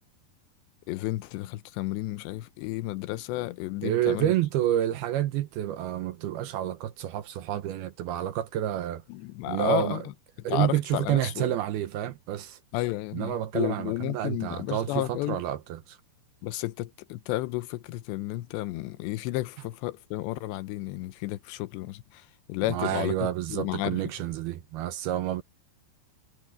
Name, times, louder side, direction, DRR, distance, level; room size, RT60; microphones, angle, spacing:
voice 1, 0.9-4.3 9.1-10.0 10.5-11.5 12.7-15.4 16.4-22.2 22.5-24.0, left 17 dB, 90° left, 3.0 m, -32 dB
voice 2, 3.8-9.0 9.5-10.0 10.4-12.6 13.1-16.0 22.7-25.4, right 12 dB, 75° right, 2.6 m, -29 dB
omnidirectional pair, 5.0 m